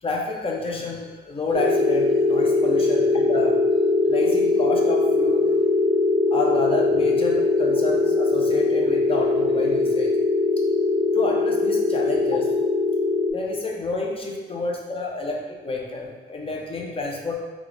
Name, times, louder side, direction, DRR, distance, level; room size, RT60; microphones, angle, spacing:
voice 1, 0.0-3.6 4.0-5.5 6.3-10.1 11.1-12.5 13.3-17.3, left 3 dB, 30° left, -1 dB, 0.7 m, -29 dB
sound 1, 1.5-13.3, left 3 dB, 40° right, 0.8 m, -21 dB
3.6 x 2.4 x 3.7 m, 1.2 s
cardioid pair, 90°, 20 cm